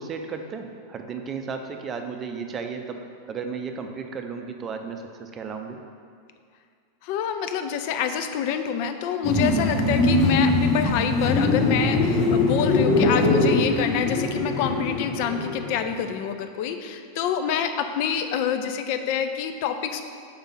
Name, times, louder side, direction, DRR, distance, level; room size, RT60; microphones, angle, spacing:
voice 1, 0.0-3.0 3.3-5.8, right 5 dB, 25° right, 5 dB, 0.5 m, -34 dB
voice 2, 7.0-20.0, left 8 dB, 45° left, 7 dB, 0.4 m, -27 dB
sound 1, 9.2-15.9, left 2 dB, 30° left, 0.9 m, -22 dB
5.1 x 3.5 x 5.6 m, 2.2 s
figure-of-eight pair, 90°, 0 cm